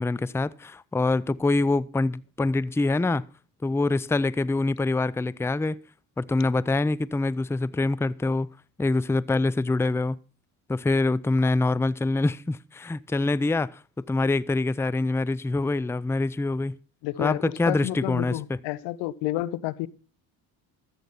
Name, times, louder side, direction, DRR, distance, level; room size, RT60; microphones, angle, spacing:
voice 1, 0.0-3.2 3.6-5.8 6.2-8.5 8.8-10.2 10.7-13.8 14.1-16.8 17.2-18.6, left 2 dB, 5° left, 0.5 m, -25 dB
voice 2, 17.0-19.9, left 16 dB, 85° left, 0.9 m, -30 dB
13.5 x 8.2 x 5.7 m
supercardioid pair, 70°, 42 cm